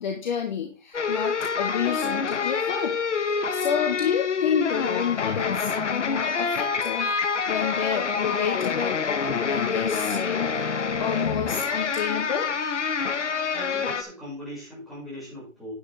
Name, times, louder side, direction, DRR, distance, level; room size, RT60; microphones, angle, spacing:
voice 1, 0.0-3.0 3.3-12.5, left 7 dB, 35° left, 3 dB, 1.5 m, -29 dB
sound 1, 0.9-14.0, left 5 dB, 60° left, 1.7 m, -27 dB
voice 2, 13.1-15.7, equal, ahead, -9 dB, 6.5 m, -40 dB
10.0 x 8.8 x 3.6 m, 0.35 s
hypercardioid pair, 155°, 39 cm